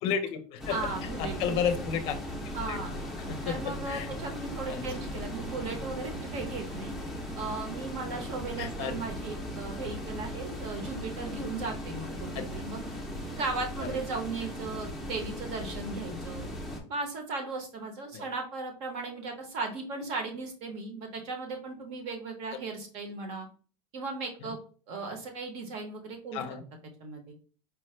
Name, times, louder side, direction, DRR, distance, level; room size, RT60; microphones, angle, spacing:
voice 1, 0.0-2.2 2.7-2.8 3.2-4.1 4.7-4.8 8.6-8.9 12.3-12.4 13.8-13.9 18.1-18.2 26.3-26.6, left 7 dB, 40° left, 7 dB, 0.6 m, -32 dB
sound 1, 0.6-16.8, equal, ahead, 0.6 m, -38 dB
voice 2, 0.7-1.6 2.5-2.9 3.4-6.9 7.4-12.8 13.3-16.4 16.9-23.5 23.9-24.6 24.9-26.4 27.0-27.3, right 3 dB, 45° right, 4 dB, 0.9 m, -37 dB
4.6 x 2.1 x 3.1 m, 0.40 s
supercardioid pair, 165°, 15 cm